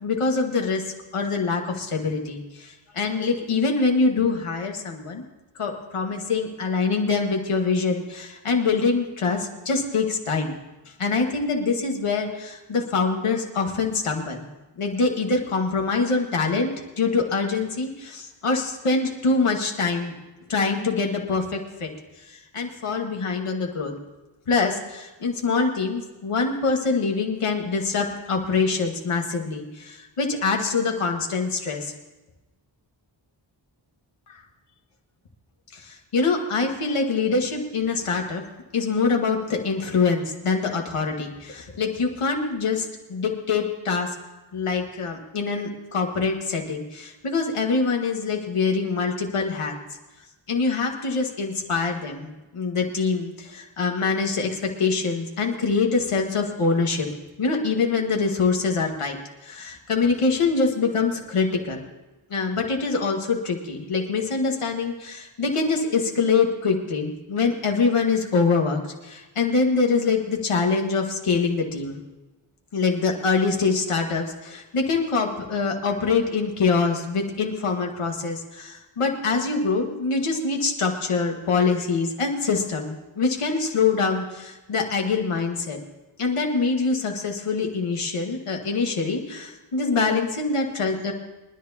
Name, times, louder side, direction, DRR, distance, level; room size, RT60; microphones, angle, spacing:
voice 1, 0.0-0.8 1.1-5.2 5.6-10.6 11.0-14.4 14.8-20.1 20.5-21.9 22.5-23.9 24.5-31.9 34.3-34.4 35.7-38.4 38.7-44.1 44.5-49.7 50.5-57.1 57.4-59.2 59.4-61.8 62.3-72.0 72.7-85.8 86.2-91.1, left 4 dB, 85° left, 2 dB, 1.9 m, -24 dB
27.5 x 10.5 x 2.9 m, 1.1 s
cardioid pair, 40°, 50 cm